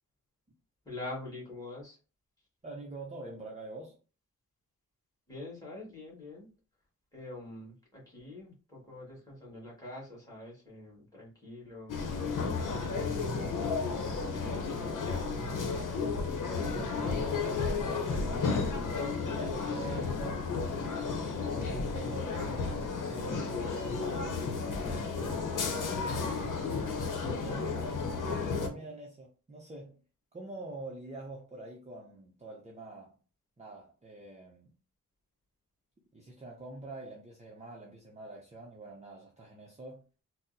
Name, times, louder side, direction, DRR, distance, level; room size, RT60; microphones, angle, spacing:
voice 1, 0.9-2.0 5.3-6.5 7.1-12.3 12.7-15.5, left 2 dB, 10° left, 1.8 m, -45 dB
voice 2, 2.6-4.0 16.4-26.2 27.0-27.9 28.3-30.0 30.3-33.1 33.6-34.7 36.1-40.0, right 2 dB, 20° right, 0.6 m, -46 dB
sound 1, 11.9-28.7, left 4 dB, 85° left, 0.7 m, -33 dB
4.1 x 2.1 x 2.6 m
wide cardioid pair, 130°, 31 cm